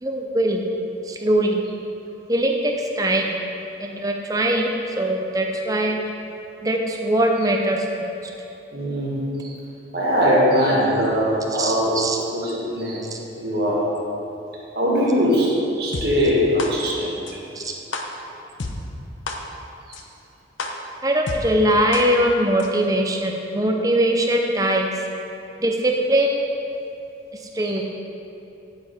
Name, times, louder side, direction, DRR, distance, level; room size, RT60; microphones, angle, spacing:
voice 1, 0.0-0.6 1.1-1.6 2.3-3.4 3.8-6.0 6.6-8.1 11.5-12.2 13.1-13.2 17.6-17.7 21.0-24.9 25.6-26.4 27.5-27.8, right 1 dB, 20° right, 2 dB, 0.7 m, -21 dB
voice 2, 8.7-9.5 9.9-12.0 12.3-13.1 13.4-13.9 14.8-17.2 27.6-27.8, equal, 55° right, -5 dB, 1.9 m, -21 dB
sound 1, 15.9-16.0 16.6-16.7 17.3-17.4 17.9-18.0 18.6-18.7 19.3-19.4 19.9-20.0 20.6-20.7 21.3-21.4 21.9-22.0 22.6-22.7, left 4 dB, 90° left, 0.8 m, -28 dB
9.4 x 7.6 x 4.3 m, 2.9 s
head